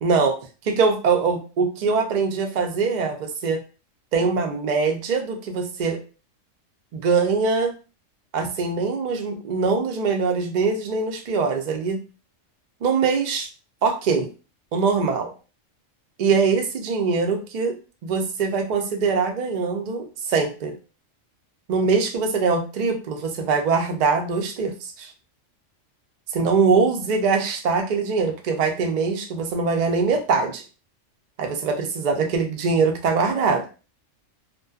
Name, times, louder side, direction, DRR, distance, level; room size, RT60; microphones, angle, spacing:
voice 1, 0.0-0.4 0.7-3.6 4.1-6.0 6.9-7.7 8.3-12.0 12.8-13.5 13.8-14.3 14.7-15.3 16.2-17.8 18.0-20.7 21.7-25.1 26.3-30.6 31.4-33.6, right 4 dB, 80° right, 5 dB, 0.4 m, -22 dB
2.5 x 2.2 x 2.3 m, 0.34 s
omnidirectional pair, 1.3 m